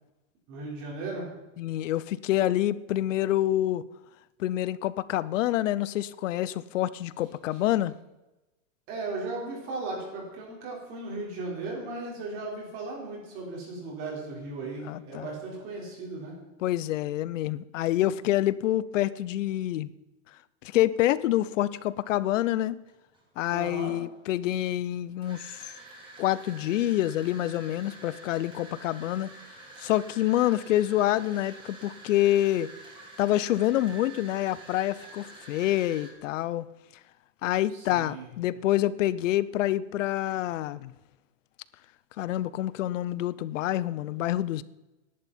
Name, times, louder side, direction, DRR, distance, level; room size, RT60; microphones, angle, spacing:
voice 1, 0.5-1.3 8.9-16.3 23.5-24.0 37.7-38.3, right 3 dB, 35° right, 4.8 m, -36 dB
voice 2, 1.6-3.8 4.4-7.9 14.8-15.3 16.6-19.9 20.7-22.8 23.4-25.7 26.2-29.3 29.8-32.7 33.2-36.7 37.4-40.9 42.2-44.6, left 13 dB, 70° left, 0.7 m, -27 dB
sound 1, 22.0-22.1 22.9-23.4 24.1-36.1, right 2 dB, 10° right, 2.0 m, -48 dB
18.0 x 11.0 x 4.4 m
supercardioid pair, 175°, 38 cm